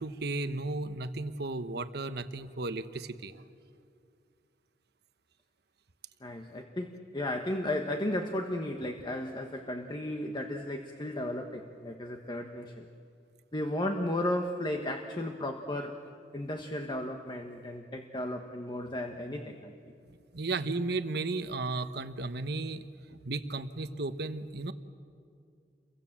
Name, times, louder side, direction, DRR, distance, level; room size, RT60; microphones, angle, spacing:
voice 1, 0.0-3.4 20.3-22.8 23.1-24.7, right 3 dB, 65° right, 10 dB, 1.2 m, -34 dB
voice 2, 6.2-12.8 13.5-19.7, left 1 dB, 25° left, 4 dB, 1.3 m, -34 dB
29.5 x 23.5 x 7.5 m, 2.4 s
head